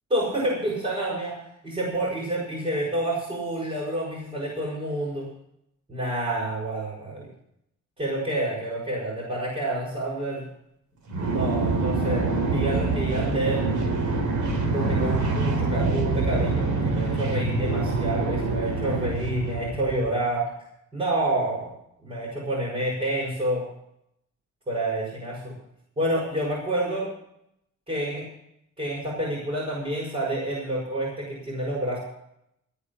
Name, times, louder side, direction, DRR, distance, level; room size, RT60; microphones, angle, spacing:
voice 1, 0.1-5.3 5.9-7.3 8.0-10.5 11.3-13.7 14.6-20.5 20.9-21.7 22.0-23.6 24.7-25.5 26.0-27.1 27.9-28.2 28.8-32.0, right 1 dB, 20° right, -6 dB, 6.5 m, -28 dB
sound 1, 11.1-20.0, right 3 dB, 85° right, 3.9 m, -25 dB
14.5 x 9.5 x 7.4 m, 0.76 s
wide cardioid pair, 150°, 30 cm